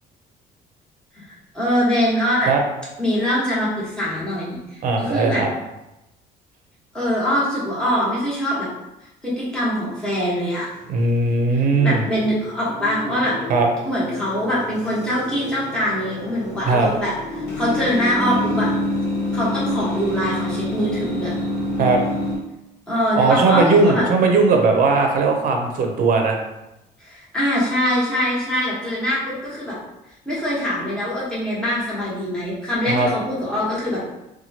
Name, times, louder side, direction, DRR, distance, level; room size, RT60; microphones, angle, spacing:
voice 1, 1.2-2.5 3.0-5.4 6.9-8.7 9.2-10.7 11.5-13.3 13.8-17.1 17.5-18.7 19.3-21.3 22.9-24.0 27.0-29.8 30.2-34.0, equal, 5° left, -9 dB, 1.2 m, -23 dB
voice 2, 4.8-5.5 10.9-12.0 13.5-13.7 16.7-16.9 21.8-22.0 23.2-26.4 32.9-33.1, right 3 dB, 55° right, 3 dB, 0.6 m, -18 dB
sound 1, 10.7-22.4, left 1 dB, 70° left, 1.1 m, -28 dB
2.8 x 2.3 x 2.7 m, 0.93 s
cardioid pair, 110°, 17 cm